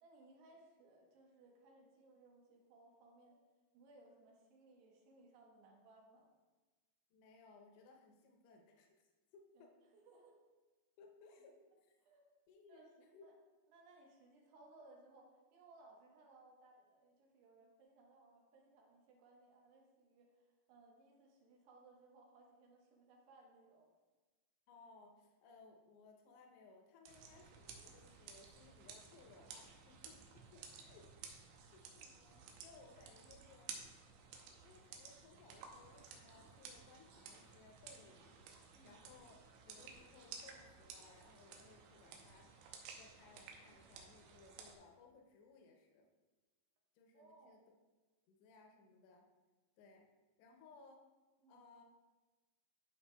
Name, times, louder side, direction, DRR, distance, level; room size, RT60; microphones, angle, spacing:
voice 1, 0.0-3.4 3.7-6.3 9.5-10.4 12.1-12.3 12.7-13.3 13.7-23.9 33.2-33.4 38.7-39.0 47.1-47.6 51.4-51.6, right 2 dB, 75° right, 0 dB, 3.0 m, -64 dB
voice 2, 7.1-9.7 11.0-11.9 12.5-12.9 13.1-13.3 24.7-31.4 31.7-33.7 34.3-38.3 38.8-46.1 46.9-47.6 48.3-49.3 49.8-50.1 50.4-51.0 51.5-51.8, left 4 dB, 80° left, 2 dB, 3.0 m, -63 dB
sound 1, 27.1-44.8, right 6 dB, 90° right, 3.0 m, -55 dB
11.5 x 5.6 x 2.3 m, 1.2 s
omnidirectional pair, 5.1 m